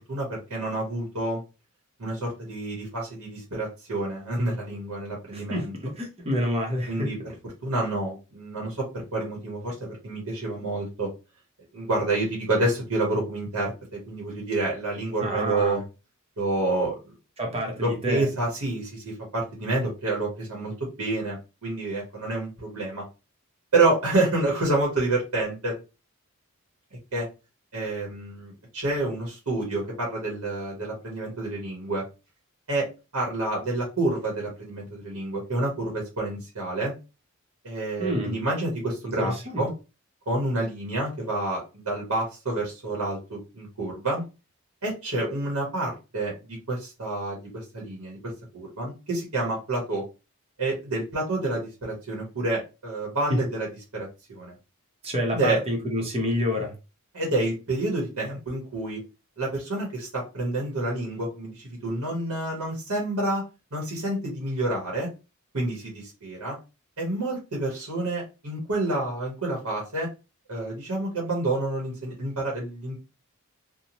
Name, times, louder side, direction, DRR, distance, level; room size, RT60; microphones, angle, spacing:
voice 1, 0.1-1.4 2.0-5.7 6.9-7.2 7.6-11.1 11.7-15.8 16.4-17.1 17.8-23.0 23.7-25.8 27.1-27.3 27.7-32.0 32.7-32.9 33.1-36.9 37.6-39.7 40.3-44.2 44.8-48.2 48.5-50.0 50.6-53.7 53.9-54.5 55.3-55.6 57.1-59.0 59.4-63.4 63.7-65.1 65.5-66.6 67.0-70.1 70.5-73.0, right 2 dB, 90° right, 1.0 m, -28 dB
voice 2, 5.3-7.1 15.2-15.8 17.4-18.3 38.0-38.3 39.2-39.6 55.0-56.7, equal, 25° right, 0.8 m, -28 dB
2.7 x 2.2 x 2.9 m
head